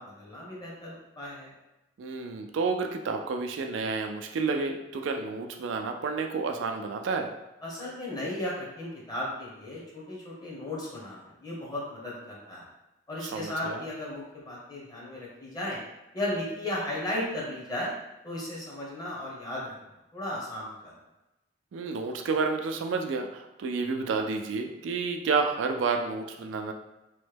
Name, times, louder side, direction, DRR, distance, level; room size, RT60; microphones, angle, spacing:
voice 1, 0.0-1.5 7.6-12.7 13.1-15.8 16.1-17.9 18.2-19.7 20.1-20.9, left 1 dB, 20° left, -5 dB, 0.9 m, -35 dB
voice 2, 2.0-7.3 13.2-13.8 21.7-26.7, right 4 dB, 90° right, 4 dB, 0.4 m, -30 dB
3.0 x 2.2 x 3.3 m, 0.96 s
head